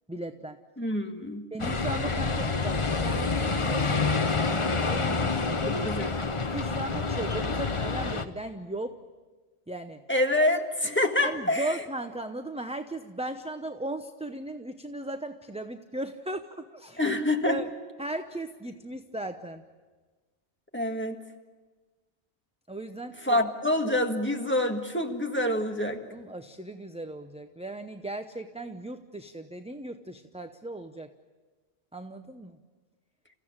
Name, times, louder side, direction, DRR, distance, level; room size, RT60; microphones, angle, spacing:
voice 1, 0.1-0.6 1.5-5.8 6.5-9.0 9.7-10.0 11.2-17.0 17.5-17.7 18.0-19.6 22.7-23.3 26.1-31.1 31.9-32.6, right 1 dB, 5° right, 7 dB, 0.6 m, -37 dB
voice 2, 0.8-1.5 5.7-6.1 10.1-11.8 17.0-17.6 20.7-21.2 23.2-26.0, left 1 dB, 10° left, 3 dB, 1.7 m, -26 dB
sound 1, 1.6-8.2, left 4 dB, 30° left, 0.9 m, -28 dB
29.5 x 15.5 x 8.9 m, 1.3 s
omnidirectional pair, 1.1 m